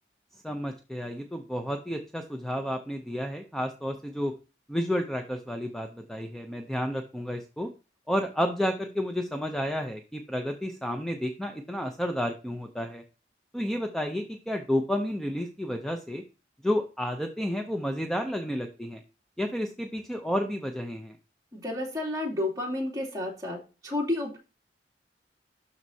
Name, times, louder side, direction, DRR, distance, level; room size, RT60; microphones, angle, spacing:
voice 1, 0.3-4.3 4.7-7.7 8.1-13.0 13.5-16.2 16.6-19.0 19.4-21.2, equal, ahead, 5 dB, 0.5 m, -31 dB
voice 2, 21.5-24.4, left 1 dB, 20° right, -3 dB, 2.6 m, -31 dB
12.5 x 4.3 x 2.7 m, 0.32 s
head